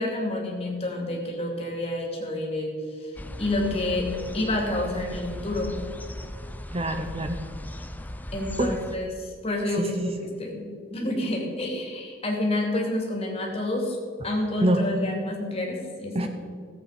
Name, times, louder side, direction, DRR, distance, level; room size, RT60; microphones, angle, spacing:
voice 1, 0.0-2.7 3.0-4.1 4.3-5.8 8.3-10.6 10.9-14.0 14.2-16.3, left 1 dB, 30° left, -1 dB, 2.7 m, -29 dB
sound 1, 3.2-9.0, left 1 dB, 10° left, 0.5 m, -37 dB
voice 2, 6.7-7.4 8.6-8.7 9.8-10.1 14.6-14.8 16.1-16.3, right 1 dB, 30° right, 6 dB, 0.7 m, -25 dB
17.0 x 8.1 x 5.1 m, 2.2 s
head